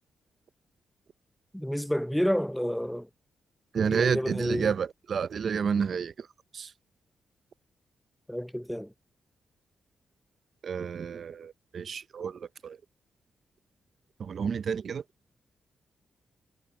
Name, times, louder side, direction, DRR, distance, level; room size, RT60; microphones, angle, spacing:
voice 1, 1.5-3.1 3.8-4.7 8.3-8.9, equal, ahead, 0.7 m, -29 dB
voice 2, 3.7-6.3 6.5-6.7 10.6-12.8 14.2-15.0, right 6 dB, 60° right, 0.5 m, -30 dB
cardioid pair, 80°, 0 cm